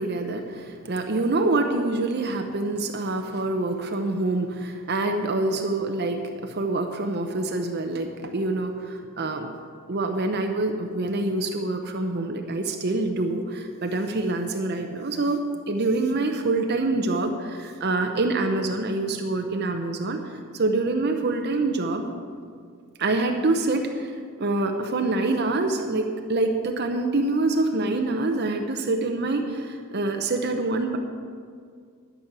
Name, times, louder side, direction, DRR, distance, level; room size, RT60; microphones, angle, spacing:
voice 1, 0.0-9.5 9.9-22.1 23.0-24.1 24.4-31.0, right 2 dB, 50° right, 4 dB, 0.7 m, -26 dB
11.5 x 6.3 x 8.2 m, 2.2 s
head